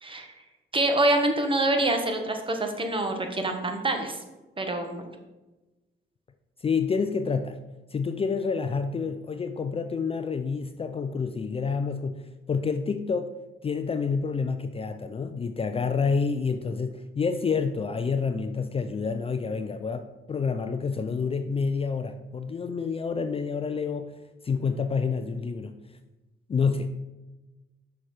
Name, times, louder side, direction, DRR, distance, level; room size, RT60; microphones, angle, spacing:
voice 1, 0.0-0.3 0.7-4.2 4.6-5.1, right 2 dB, 25° right, 5 dB, 1.3 m, -26 dB
voice 2, 6.6-7.6 7.9-13.3 13.6-24.1 24.4-25.8 26.5-26.9, left 5 dB, 30° left, 8 dB, 0.4 m, -28 dB
6.4 x 5.8 x 4.8 m, 1.1 s
cardioid pair, 90°, 20 cm